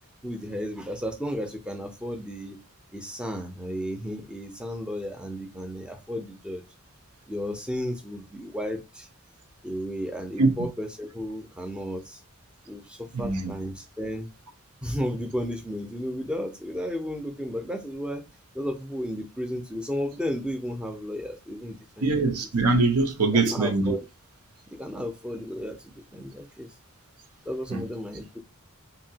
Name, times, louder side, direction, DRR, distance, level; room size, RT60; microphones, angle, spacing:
voice 1, 0.2-2.6 2.9-6.6 7.3-9.1 9.6-12.2 12.7-14.3 14.8-18.2 18.5-22.3 23.3-24.0 24.7-26.7 27.5-28.4, equal, 5° right, 0.5 m, -33 dB
voice 2, 13.1-13.5 22.0-24.0 27.7-27.8, right 3 dB, 85° right, 0.7 m, -23 dB
2.9 x 2.6 x 2.7 m
head